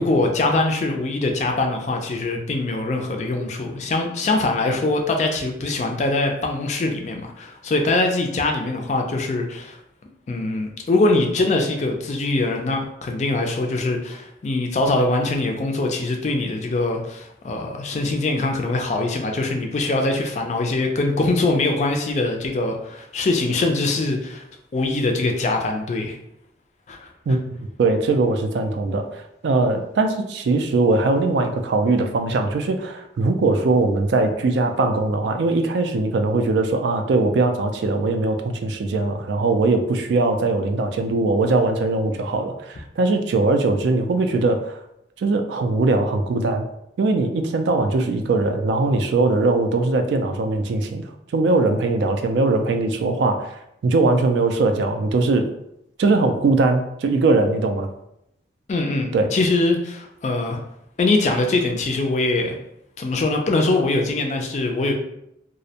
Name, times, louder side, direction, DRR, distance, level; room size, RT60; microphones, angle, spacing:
voice 1, 0.0-9.8 10.3-24.4 24.7-26.2 26.9-27.1 58.7-60.6 61.0-62.6 63.0-64.9, left 2 dB, 40° left, 3 dB, 0.3 m, -22 dB
voice 2, 27.8-44.8 45.2-46.7 47.0-53.5 53.8-55.5 56.0-57.9 59.1-59.3, right 3 dB, 80° right, 6 dB, 0.3 m, -20 dB
2.4 x 2.1 x 2.7 m, 0.79 s
head